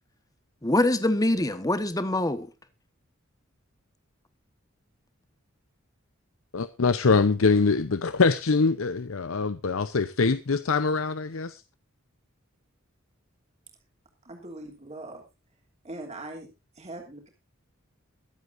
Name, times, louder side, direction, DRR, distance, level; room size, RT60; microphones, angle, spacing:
voice 1, 0.6-2.5, left 1 dB, 15° left, 1.2 m, -24 dB
voice 2, 6.5-11.6, left 4 dB, 80° left, 0.7 m, -23 dB
voice 3, 14.2-15.2 15.8-16.5 16.7-17.3, right 2 dB, 30° right, 3.1 m, -41 dB
23.0 x 8.1 x 2.6 m
head